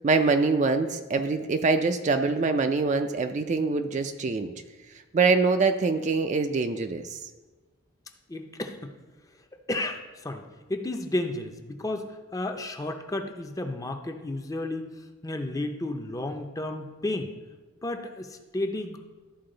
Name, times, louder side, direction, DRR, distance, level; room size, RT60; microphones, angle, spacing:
voice 1, 0.0-4.5 5.1-7.2, right 4 dB, 35° right, 7 dB, 0.4 m, -24 dB
voice 2, 8.3-8.9 9.7-10.4 10.7-12.1 12.3-14.9 15.2-17.3 17.8-19.0, left 2 dB, 15° left, 5 dB, 0.5 m, -32 dB
12.5 x 4.6 x 3.8 m, 1.2 s
head